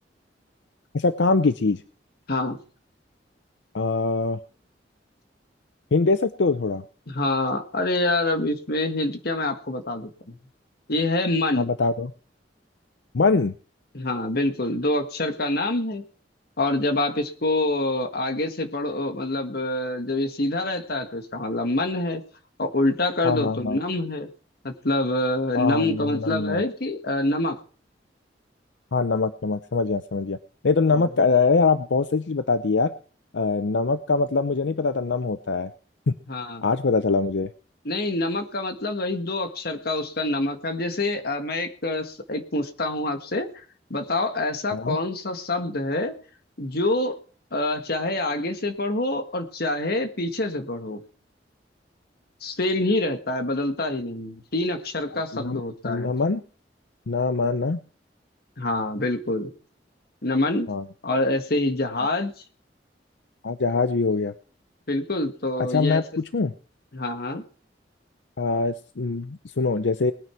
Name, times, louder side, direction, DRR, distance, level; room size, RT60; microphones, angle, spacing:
voice 1, 0.9-1.8 3.7-4.4 5.9-6.8 11.6-12.1 13.1-13.5 23.2-23.8 25.5-26.6 28.9-30.4 30.6-32.9 33.3-35.7 36.1-36.2 36.6-37.5 44.7-45.0 55.3-56.4 57.1-57.8 60.7-60.8 63.4-64.3 65.7-66.5 68.4-70.1, left 4 dB, 85° left, 11 dB, 0.6 m, -23 dB
voice 2, 7.1-10.4 10.9-11.7 13.9-16.0 16.6-22.2 22.6-24.3 24.6-27.6 30.9-31.0 36.3-36.7 37.9-43.5 43.9-46.1 46.6-47.2 47.5-51.0 52.4-56.2 58.6-59.5 60.2-60.7 61.0-62.3 64.9-66.0 66.9-67.4, left 2 dB, 60° left, 6 dB, 1.6 m, -26 dB
19.5 x 9.4 x 4.5 m, 0.41 s
head